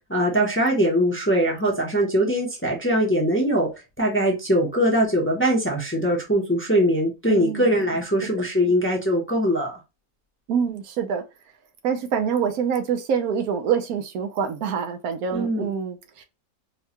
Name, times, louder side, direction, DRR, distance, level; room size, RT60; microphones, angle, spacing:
voice 1, 0.1-3.7 4.0-9.7 15.3-15.6, equal, 10° left, 0.7 m, -21 dB
voice 2, 7.3-7.7 8.4-8.5 10.5-11.2 11.8-16.2, right 7 dB, 85° right, 1.2 m, -26 dB
4.5 x 2.3 x 2.8 m
omnidirectional pair, 1.5 m